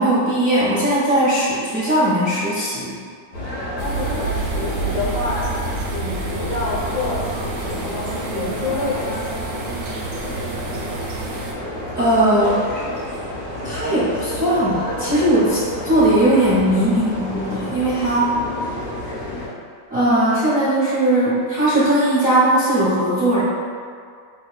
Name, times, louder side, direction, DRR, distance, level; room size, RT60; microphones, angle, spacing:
voice 1, 0.0-2.9 11.9-12.6 13.6-18.4 19.9-23.4, right 1 dB, 55° right, -8 dB, 0.6 m, -18 dB
sound 1, 3.3-19.5, left 1 dB, 85° left, 2.0 m, -30 dB
voice 2, 3.8-9.7, left 2 dB, 70° left, -5 dB, 1.5 m, -28 dB
sound 2, 3.8-11.5, right 3 dB, 80° right, 1.3 m, -29 dB
6.0 x 2.1 x 2.3 m, 2.2 s
omnidirectional pair, 1.9 m